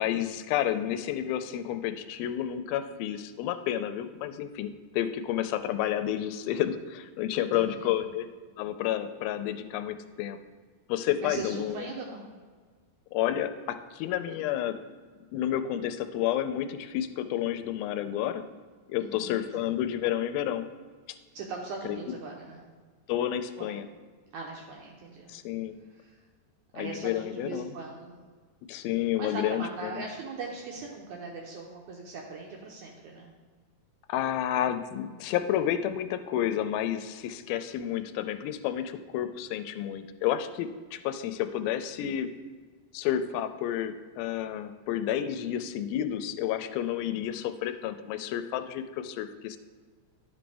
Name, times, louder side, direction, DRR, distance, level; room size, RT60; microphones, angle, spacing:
voice 1, 0.0-8.3 8.6-10.4 10.9-11.9 13.1-14.8 15.3-18.4 18.9-20.7 21.1-21.2 21.9-22.0 23.1-23.9 25.3-25.8 26.7-27.7 28.7-30.0 34.1-42.3 42.9-49.6, left 11 dB, 90° left, 10 dB, 2.4 m, -30 dB
voice 2, 7.4-8.1 11.2-12.3 19.0-19.4 21.3-22.6 23.6-23.7 24.3-25.3 25.9-26.2 26.7-28.2 29.2-33.3, right 4 dB, 80° right, -1 dB, 1.8 m, -40 dB
11.0 x 5.1 x 3.4 m, 1.5 s
omnidirectional pair, 4.2 m